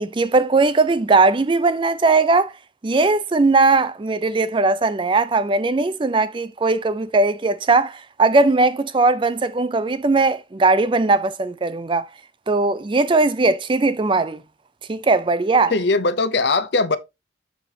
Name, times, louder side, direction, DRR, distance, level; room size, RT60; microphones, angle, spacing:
voice 1, 0.0-2.5 2.8-12.1 12.5-14.4 14.9-15.7, right 3 dB, 25° right, 0.4 m, -19 dB
voice 2, 15.7-17.0, left 3 dB, 60° left, 0.7 m, -20 dB
6.7 x 6.5 x 2.8 m
head